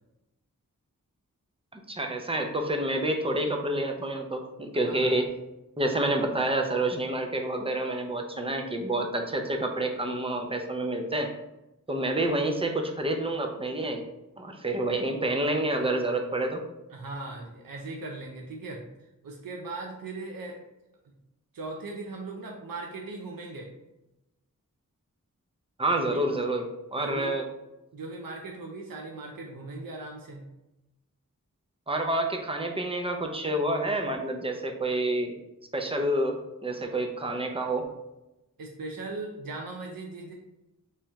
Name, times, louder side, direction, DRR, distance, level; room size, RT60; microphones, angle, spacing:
voice 1, 1.7-5.3 5.8-11.3 11.9-14.0 14.4-16.6 25.8-26.6 26.9-27.4 31.9-35.3 35.7-37.9, right 1 dB, 15° right, 3 dB, 0.5 m, -28 dB
voice 2, 4.8-5.1 16.9-18.9 19.2-20.6 21.5-23.7 25.9-26.2 27.0-27.3 27.9-30.5 38.6-40.3, right 2 dB, 80° right, 0 dB, 0.6 m, -38 dB
3.2 x 2.9 x 3.5 m, 0.94 s
wide cardioid pair, 70°, 34 cm